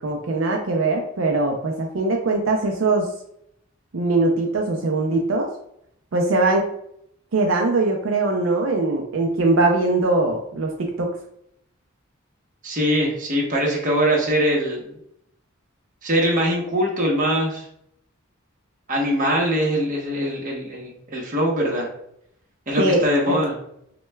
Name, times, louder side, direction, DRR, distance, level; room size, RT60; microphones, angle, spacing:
voice 1, 0.0-3.1 3.9-5.5 6.1-6.7 7.3-11.1 22.8-23.4, right 2 dB, 75° right, 1 dB, 0.5 m, -21 dB
voice 2, 12.6-15.0 16.0-17.6 18.9-21.9 22.7-23.6, equal, 40° right, -2 dB, 1.0 m, -22 dB
6.0 x 2.2 x 2.2 m, 0.74 s
head